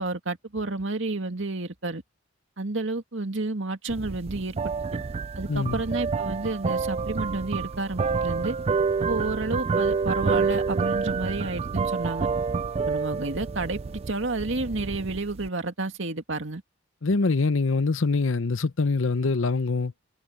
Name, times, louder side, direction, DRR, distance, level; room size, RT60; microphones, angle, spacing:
voice 1, 0.0-2.0 2.6-4.7 5.4-8.6 9.0-12.3 12.9-16.6, right 2 dB, 70° right, 2.2 m, -30 dB
sound 1, 3.9-15.5, right 5 dB, 30° right, 0.3 m, -28 dB
voice 2, 5.5-5.8 17.0-19.9, left 3 dB, 75° left, 0.8 m, -24 dB
head